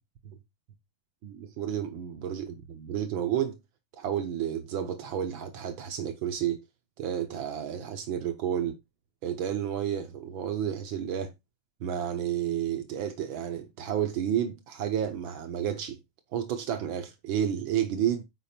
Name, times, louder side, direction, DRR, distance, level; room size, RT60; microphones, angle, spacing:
voice 1, 1.2-3.6 3.9-6.6 7.0-8.8 9.2-11.3 11.8-16.0 16.3-18.2, right 9 dB, 85° right, 1.1 m, -31 dB
8.9 x 4.9 x 4.4 m
omnidirectional pair, 3.6 m